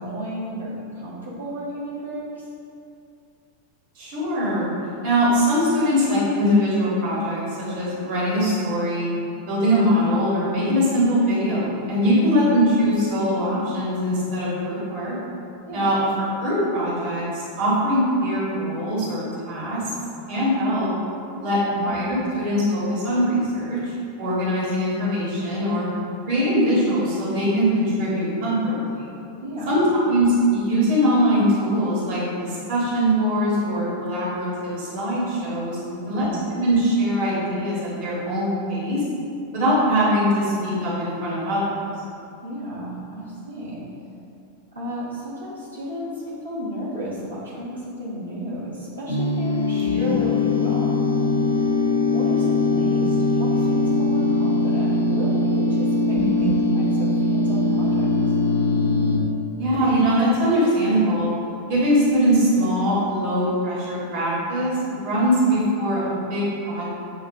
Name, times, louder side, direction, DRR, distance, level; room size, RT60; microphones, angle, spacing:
voice 1, 0.0-2.5 15.6-15.9 21.3-21.9 29.4-29.8 35.8-36.4 42.4-43.9 44.7-50.9 52.1-58.3, equal, 80° right, -10 dB, 1.2 m, -33 dB
voice 2, 3.9-4.7 5.0-9.1 9.5-15.2 15.7-16.0 16.4-19.9 20.3-20.9 21.4-23.9 24.2-25.9 26.3-28.9 29.7-35.8 36.1-39.0 39.5-41.7 49.8-50.3 56.1-56.7 59.6-61.3 61.7-66.9, equal, 50° right, -7 dB, 1.2 m, -22 dB
sound 1, 49.1-59.2, left 2 dB, 75° left, 0.5 m, -21 dB
7.1 x 2.4 x 2.6 m, 2.6 s
figure-of-eight pair, 90°, 0 cm